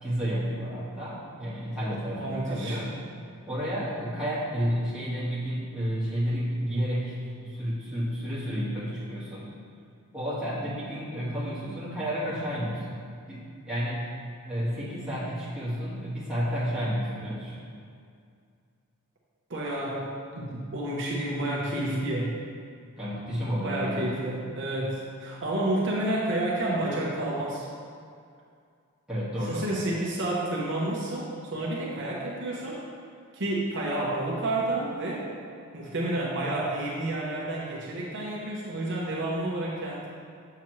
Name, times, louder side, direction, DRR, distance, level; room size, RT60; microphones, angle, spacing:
voice 1, 0.0-3.0 3.5-9.5 10.1-13.0 13.3-14.1 14.4-17.6 23.0-24.1 29.1-29.7, equal, 5° right, -10 dB, 1.6 m, -31 dB
voice 2, 2.1-2.8 19.5-22.4 23.6-27.7 29.3-32.8 33.3-35.3 35.7-40.1, right 1 dB, 55° right, -4 dB, 0.8 m, -30 dB
7.2 x 5.9 x 3.1 m, 2.3 s
head